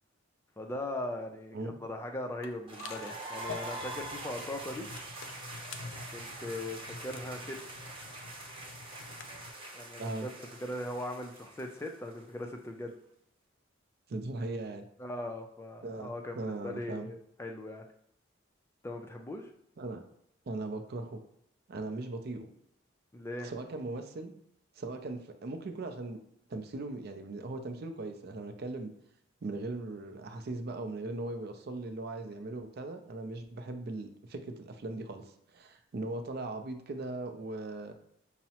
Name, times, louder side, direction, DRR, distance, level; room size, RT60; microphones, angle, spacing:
voice 1, 0.6-4.9 6.1-7.6 9.7-10.3 10.6-12.9 15.0-17.8 18.8-19.5 23.1-23.5, left 1 dB, 15° left, 3 dB, 0.3 m, -39 dB
sound 1, 2.4-9.5, left 5 dB, 85° left, 0.4 m, -48 dB
sound 2, 2.7-12.5, right 2 dB, 25° right, 0.8 m, -44 dB
voice 2, 14.1-14.8 15.8-17.1 19.8-20.0 20.5-21.2 21.7-22.5 23.4-24.3 24.8-26.2 26.5-28.9 29.4-35.2 35.5-37.9, right 2 dB, 55° right, 7 dB, 0.4 m, -39 dB
5.7 x 2.0 x 2.8 m, 0.73 s
head